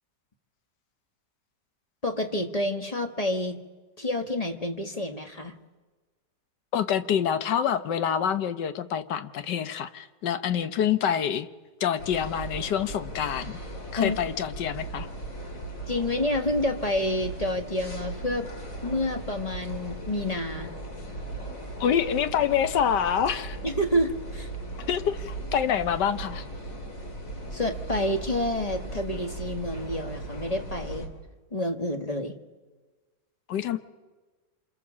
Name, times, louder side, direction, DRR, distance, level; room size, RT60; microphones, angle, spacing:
voice 1, 2.0-3.6 4.0-5.6 14.0-14.2 15.9-18.5 18.8-20.7 23.6-24.5 27.5-31.1 31.5-32.4, left 1 dB, 25° left, 5 dB, 1.3 m, -28 dB
voice 2, 6.7-11.5 11.8-13.6 13.9-15.1 21.8-23.6 24.9-26.4 33.5-33.8, left 8 dB, 80° left, 11 dB, 1.6 m, -26 dB
sound 1, 12.0-31.1, right 2 dB, 50° left, 3.5 m, -38 dB
27.0 x 26.0 x 7.5 m, 1.3 s
omnidirectional pair, 1.8 m